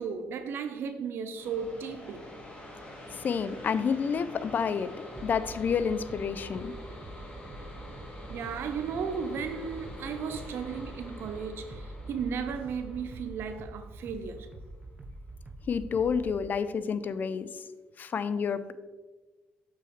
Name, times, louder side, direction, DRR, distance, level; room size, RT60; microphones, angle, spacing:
voice 1, 0.0-2.3 6.5-6.6 8.3-14.5, right 6 dB, 70° right, 0.5 m, -35 dB
sound 1, 1.3-14.7, left 1 dB, 25° left, 2.1 m, -46 dB
voice 2, 3.1-6.7 15.7-17.5 18.0-18.7, left 6 dB, 45° left, 0.4 m, -29 dB
sound 2, 5.1-16.4, right 2 dB, 25° right, 0.6 m, -45 dB
6.9 x 6.0 x 3.1 m
cardioid pair, 80°, 4 cm